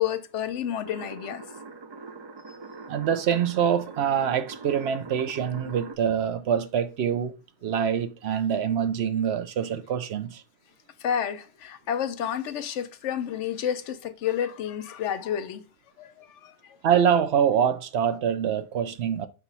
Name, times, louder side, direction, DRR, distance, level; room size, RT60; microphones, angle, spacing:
voice 1, 0.0-1.4 2.5-2.6 11.0-15.6 16.0-16.8, left 9 dB, 85° left, 1.0 m, -30 dB
sound 1, 0.8-5.9, right 4 dB, 35° right, 0.4 m, -42 dB
voice 2, 2.9-7.3 7.6-10.4 16.8-19.3, right 8 dB, 70° right, 0.9 m, -25 dB
6.0 x 3.0 x 5.4 m
omnidirectional pair, 1.2 m